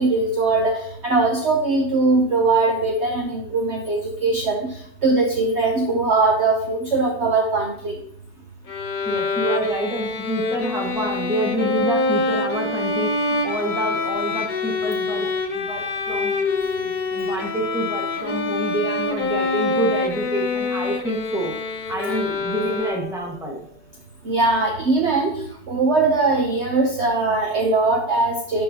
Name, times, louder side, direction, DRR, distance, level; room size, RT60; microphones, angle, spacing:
voice 1, 0.0-4.8 5.0-8.0 24.2-25.4 25.7-28.6, right 3 dB, 50° right, 1 dB, 1.0 m, -20 dB
Bowed string instrument, 8.7-23.3, left 3 dB, 60° left, 0.5 m, -25 dB
voice 2, 9.0-16.3 16.8-21.5 21.9-23.6, right 1 dB, ahead, -1 dB, 1.3 m, -27 dB
11.0 x 4.6 x 2.9 m, 0.66 s
omnidirectional pair, 1.7 m